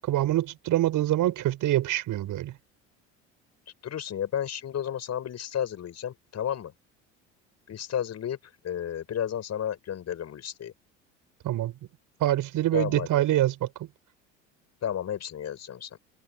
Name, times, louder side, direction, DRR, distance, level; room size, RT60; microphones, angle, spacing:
voice 1, 0.0-2.5 11.4-11.7 12.2-13.7, right 14 dB, 55° right, 7.6 m, -25 dB
voice 2, 3.8-6.7 7.7-8.4 8.6-10.7 12.7-13.1 14.8-16.0, left 9 dB, 45° left, 7.9 m, -32 dB
hypercardioid pair, 70°, 38 cm